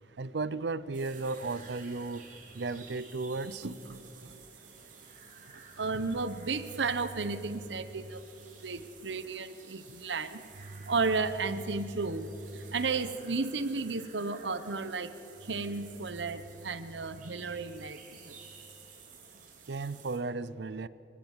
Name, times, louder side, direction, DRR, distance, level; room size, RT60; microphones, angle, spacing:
voice 1, 0.2-2.3 2.5-3.7 19.7-20.9, right 3 dB, 75° right, 0.6 m, -35 dB
sound 1, 0.9-20.2, right 5 dB, 45° right, 3.3 m, -54 dB
voice 2, 3.4-4.0 5.8-8.2 8.6-10.4 10.9-12.3 12.7-15.1 15.5-18.0, right 4 dB, 90° right, 1.0 m, -33 dB
24.0 x 16.0 x 7.4 m
head